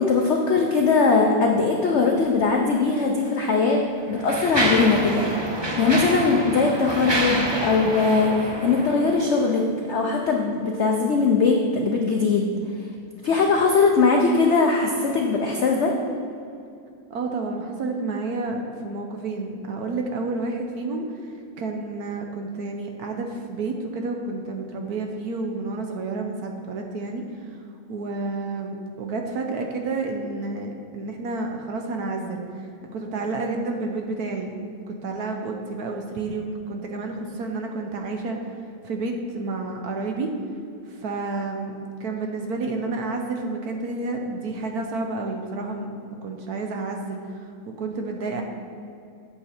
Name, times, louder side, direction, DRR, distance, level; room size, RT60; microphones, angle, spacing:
voice 1, 0.0-5.3 5.8-9.6 9.9-12.5 13.2-15.9, left 4 dB, 80° left, 1 dB, 0.6 m, -20 dB
Mechanisms, 2.9-3.0 3.8-9.5, right 1 dB, 35° right, 0.4 m, -28 dB
voice 2, 17.1-21.2 21.6-27.3 27.9-32.7 32.9-34.6 34.9-38.4 38.8-40.4 40.9-45.9 46.2-48.4, right 3 dB, 65° right, 3 dB, 1.1 m, -30 dB
8.0 x 7.3 x 4.3 m, 2.5 s
omnidirectional pair, 2.0 m